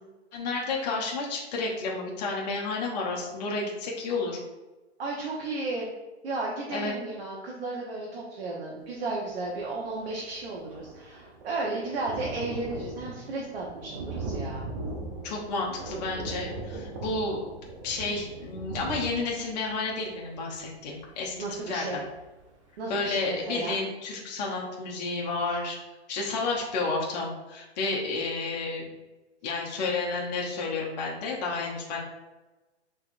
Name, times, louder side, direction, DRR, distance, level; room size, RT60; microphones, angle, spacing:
voice 1, 0.3-4.4 6.7-6.9 15.2-17.4 17.8-21.3 21.7-22.0 22.9-25.8 26.1-28.9 29.4-32.0, left 3 dB, 40° left, -2 dB, 0.7 m, -31 dB
voice 2, 5.0-5.9 6.2-14.7 18.0-18.1 21.4-22.0 22.8-23.8, right 2 dB, 60° right, -3 dB, 0.8 m, -34 dB
Thunder, 9.6-9.7 9.9-22.5 23.0-23.1 23.4-23.5, right 3 dB, 30° right, 0.4 m, -39 dB
3.4 x 2.9 x 2.4 m, 1.1 s
hypercardioid pair, 145°, 33 cm